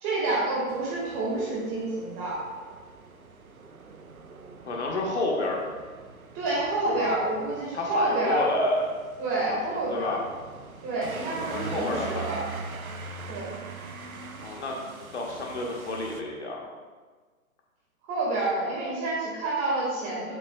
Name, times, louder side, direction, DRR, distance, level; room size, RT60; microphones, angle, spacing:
voice 1, 0.0-2.4 6.3-8.4 9.2-10.2 10.8-12.5 13.3-13.5 18.0-20.3, right 2 dB, 20° right, -5 dB, 1.7 m, -28 dB
sound 1, 0.7-16.2, right 4 dB, 75° right, 0.8 m, -42 dB
voice 2, 4.6-5.6 6.8-7.1 7.7-8.8 9.5-10.2 11.3-12.3 14.4-14.8 15.1-16.6, left 2 dB, 50° left, -1 dB, 1.4 m, -30 dB
8.9 x 7.4 x 2.2 m, 1.4 s
figure-of-eight pair, 130°, 43 cm